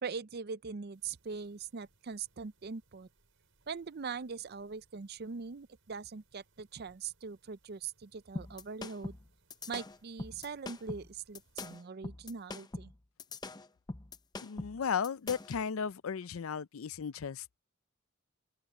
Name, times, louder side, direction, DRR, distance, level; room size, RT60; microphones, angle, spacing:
voice 1, 0.0-3.1 3.7-9.2 9.7-12.9, right 5 dB, 50° right, 0.5 m, -42 dB
sound 1, 0.9-11.8, right 2 dB, 65° right, 7.4 m, -72 dB
sound 2, 8.4-15.6, left 2 dB, 20° left, 0.6 m, -43 dB
voice 2, 14.4-17.6, left 6 dB, 75° left, 0.5 m, -35 dB
open air
head